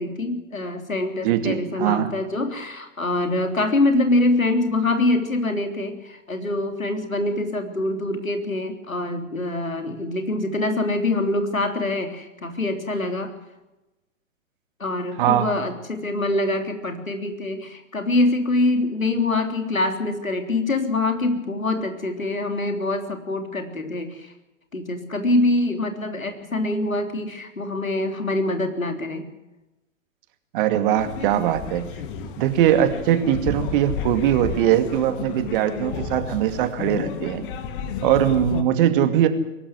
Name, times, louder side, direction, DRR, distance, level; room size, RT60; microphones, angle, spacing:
voice 1, 0.0-13.3 14.8-24.3 24.7-29.3, left 2 dB, 85° left, 7 dB, 3.5 m, -24 dB
voice 2, 1.2-2.1 15.2-15.5 30.5-31.9 32.4-37.4 38.0-39.3, right 11 dB, 40° right, 9 dB, 2.4 m, -21 dB
sound 1, 31.0-38.6, left 7 dB, 40° left, 2.4 m, -32 dB
23.0 x 13.0 x 9.8 m, 1.0 s
figure-of-eight pair, 115°, 40 cm